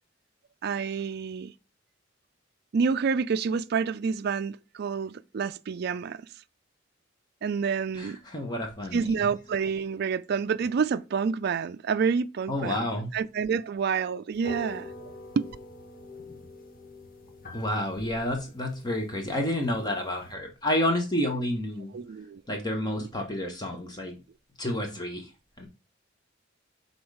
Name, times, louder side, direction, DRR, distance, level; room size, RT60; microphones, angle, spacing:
voice 1, 0.6-1.5 2.7-6.3 7.4-8.2 8.9-12.9 13.1-14.9 15.4-15.5 21.9-22.4 23.4-23.5, right 6 dB, 55° right, 0.4 m, -28 dB
voice 2, 7.9-9.3 12.5-13.1 17.5-22.0 22.5-24.2 24.6-25.3 25.6-25.7, left 1 dB, 20° left, 1.3 m, -30 dB
sound 1, 14.3-20.3, equal, 50° left, 1.3 m, -44 dB
6.2 x 4.0 x 4.8 m
head